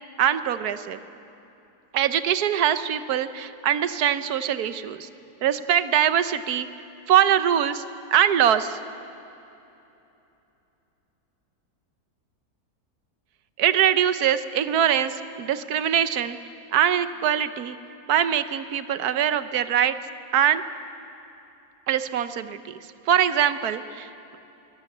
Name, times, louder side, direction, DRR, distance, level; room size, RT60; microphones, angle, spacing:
voice 1, 0.2-1.0 1.9-5.1 5.4-6.7 7.1-7.8 8.1-8.8 13.6-16.4 16.7-17.8 18.1-20.0 20.3-20.6 21.9-24.4, right 9 dB, 75° right, 12 dB, 1.3 m, -23 dB
23.0 x 17.5 x 8.4 m, 2.9 s
omnidirectional pair, 1.7 m